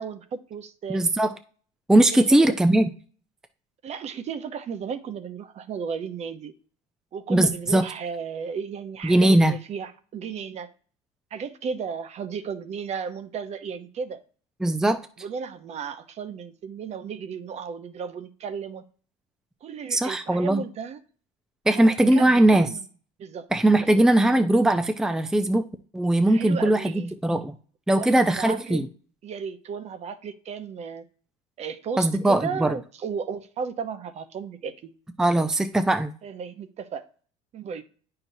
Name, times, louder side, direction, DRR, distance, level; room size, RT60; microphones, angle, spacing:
voice 1, 0.0-1.0 2.1-2.5 3.8-6.5 7.1-10.7 11.3-14.2 15.2-18.8 19.6-21.0 21.7-22.8 23.2-23.5 26.3-27.1 27.9-28.8 29.2-31.1 31.6-34.9 36.2-37.0 37.5-37.8, right 6 dB, 40° right, 0.8 m, -34 dB
voice 2, 0.9-1.3 1.9-2.8 7.3-7.9 9.0-9.5 14.6-15.0 19.9-20.6 21.7-22.7 23.5-25.7 25.9-27.5 27.9-28.9 32.0-32.8 35.2-36.1, right 1 dB, 5° right, 0.5 m, -20 dB
8.9 x 5.8 x 2.7 m
supercardioid pair, 105°, 17 cm